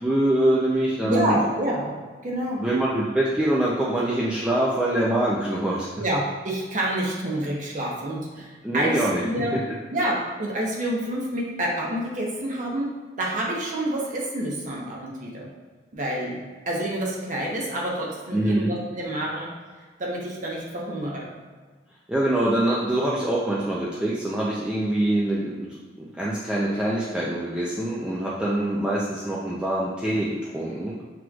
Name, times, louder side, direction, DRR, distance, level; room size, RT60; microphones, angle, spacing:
voice 1, 0.0-1.4 2.6-5.9 8.6-9.2 18.3-18.7 22.1-30.9, right 1 dB, 5° right, -6 dB, 0.4 m, -24 dB
voice 2, 1.0-2.0 2.2-2.6 6.0-9.6 9.9-12.9 13.2-15.5 15.9-16.4 16.7-19.5 20.0-21.3, right 1 dB, 45° right, -3 dB, 0.9 m, -28 dB
5.9 x 3.1 x 2.3 m, 1.5 s
head